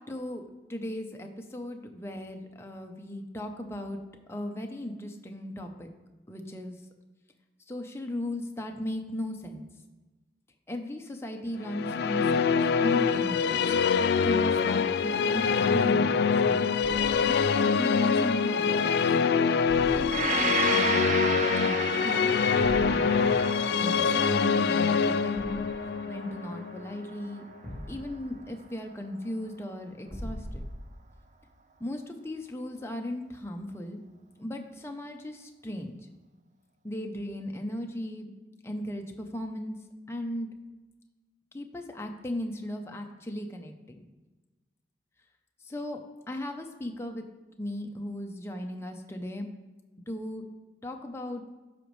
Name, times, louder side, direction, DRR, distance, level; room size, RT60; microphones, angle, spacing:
voice 1, 0.1-4.0 4.3-5.9 6.3-6.7 7.7-9.6 10.7-13.6 14.2-16.7 17.3-19.1 19.9-21.2 21.5-22.3 22.6-23.4 23.7-25.6 26.1-27.4 27.9-30.6 31.8-34.0 34.4-36.0 36.8-38.3 38.6-39.8 40.1-40.5 41.5-44.0 45.7-46.0 46.3-47.2 47.6-49.5 50.1-50.4 50.8-51.4, left 1 dB, 15° left, 3 dB, 0.6 m, -36 dB
Musical instrument, 11.6-27.1, left 6 dB, 65° left, 0.3 m, -25 dB
Thump thud, 16.8-17.3 19.6-20.4 22.6-23.0 25.3-25.8 27.6-28.3 30.1-31.0, equal, 5° right, 1.9 m, -40 dB
Gong, 20.1-28.1, right 5 dB, 45° right, 0.4 m, -34 dB
12.0 x 5.0 x 3.2 m, 1.2 s
head